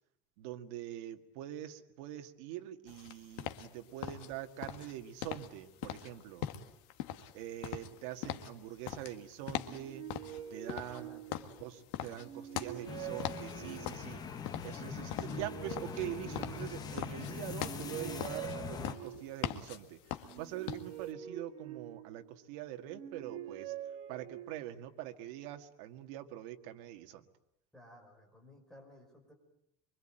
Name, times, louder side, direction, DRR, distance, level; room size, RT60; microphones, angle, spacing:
voice 1, 0.4-6.5 7.3-10.1 10.5-11.2 11.6-14.2 14.6-23.7 24.1-27.2, right 12 dB, 75° right, 6 dB, 2.0 m, -44 dB
sound 1, 2.9-21.1, left 11 dB, 80° left, 1.9 m, -42 dB
sound 2, 9.5-11.7 12.1-14.2 14.9-17.0 17.5-19.5 20.2-22.3 22.8-24.8, right 10 dB, 40° right, 2.0 m, -46 dB
voice 2, 10.8-11.6 27.7-29.3, left 1 dB, 5° left, 1 dB, 5.1 m, -56 dB
sound 3, 12.9-18.9, left 6 dB, 25° left, 1.2 m, -43 dB
25.0 x 24.0 x 9.0 m, 0.80 s
cardioid pair, 175°, 17 cm